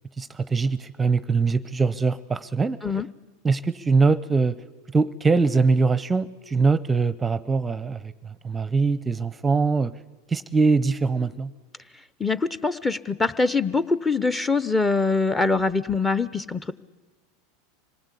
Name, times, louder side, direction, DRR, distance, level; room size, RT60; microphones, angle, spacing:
voice 1, 0.2-2.8 3.4-4.6 4.9-9.9 10.3-11.5, right 4 dB, 15° right, 17 dB, 0.7 m, -22 dB
voice 2, 12.2-16.7, left 3 dB, 15° left, 17 dB, 0.8 m, -23 dB
26.0 x 19.0 x 8.4 m, 1.3 s
hypercardioid pair, 90°, 0 cm